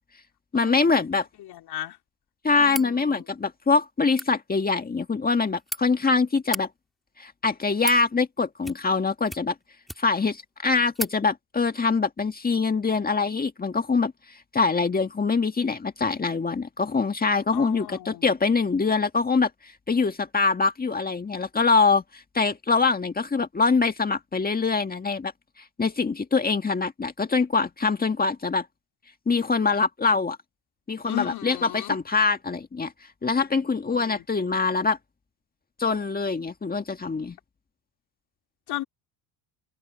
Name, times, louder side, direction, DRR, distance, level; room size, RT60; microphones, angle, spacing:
voice 1, 0.5-1.3 2.4-6.7 7.2-9.5 10.0-25.3 25.8-28.7 29.3-30.4 30.9-32.9 33.2-35.0 35.8-37.4, left 4 dB, 20° left, 1.8 m, -24 dB
voice 2, 1.4-2.0 2.6-3.2 17.5-18.4 31.0-32.0 33.9-34.2 38.7-38.8, left 14 dB, 55° left, 3.8 m, -35 dB
sound 1, 2.7-2.9 4.0-4.3 5.3-5.8 6.4-6.6 7.4-8.0 8.6-9.0 9.3-10.2 10.6-10.7 10.9-11.2, equal, ahead, 2.6 m, -35 dB
supercardioid pair, 95°, 45 cm